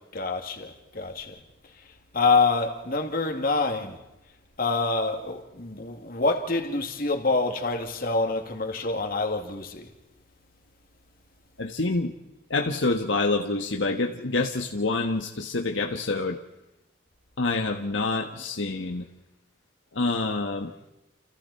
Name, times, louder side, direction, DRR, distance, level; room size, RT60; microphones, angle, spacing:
voice 1, 0.1-1.3 2.1-4.0 4.6-9.9, left 3 dB, 50° left, 2.6 m, -26 dB
voice 2, 11.6-12.1 12.5-16.4 17.4-19.0 19.9-20.7, left 3 dB, 75° left, 1.4 m, -27 dB
29.5 x 28.0 x 4.3 m
head